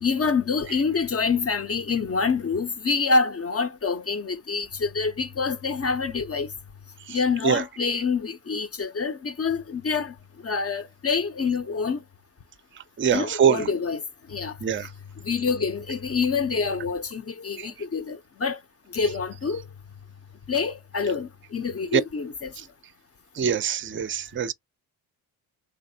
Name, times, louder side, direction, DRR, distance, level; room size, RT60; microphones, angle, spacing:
voice 1, 0.0-6.5 7.1-10.1 10.4-12.0 13.1-14.0 14.3-14.5 15.2-18.6 18.9-19.6 20.5-22.5, left 5 dB, 30° left, 0.6 m, -26 dB
voice 2, 13.0-13.7 14.6-14.9 17.6-17.7 21.9-22.0 23.4-24.5, right 8 dB, 25° right, 0.5 m, -23 dB
3.3 x 3.3 x 2.7 m
supercardioid pair, 45°, 47 cm